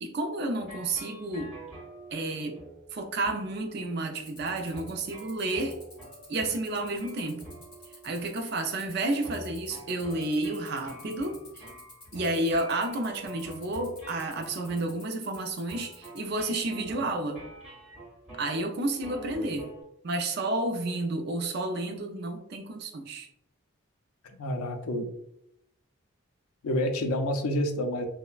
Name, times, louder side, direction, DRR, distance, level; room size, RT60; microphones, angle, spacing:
voice 1, 0.0-1.6 2.1-2.6 2.9-5.8 6.3-7.5 8.0-11.7 12.1-17.4 18.3-19.7 20.0-23.3, right 2 dB, 50° right, 5 dB, 0.3 m, -31 dB
sound 1, 0.6-8.9 9.2-19.8, right 1 dB, ahead, 1.4 m, -47 dB
sound 2, 4.2-16.2, left 2 dB, 25° left, 1.0 m, -50 dB
voice 2, 24.4-25.1 26.6-28.0, left 1 dB, 85° left, 6 dB, 0.4 m, -28 dB
3.1 x 2.0 x 2.3 m, 0.79 s
head